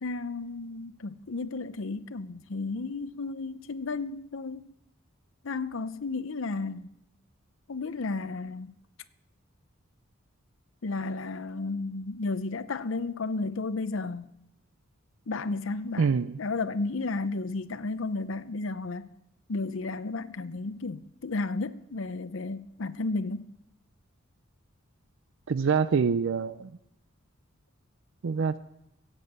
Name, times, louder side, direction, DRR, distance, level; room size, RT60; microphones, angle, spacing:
voice 1, 0.0-4.7 5.4-6.9 7.7-8.7 10.8-14.3 15.3-16.1 16.4-19.1 19.5-23.5, left 3 dB, 65° left, 0.6 m, -33 dB
voice 2, 16.0-16.4 25.5-26.7 28.2-28.6, right 5 dB, 65° right, 0.4 m, -25 dB
16.5 x 7.7 x 8.0 m
head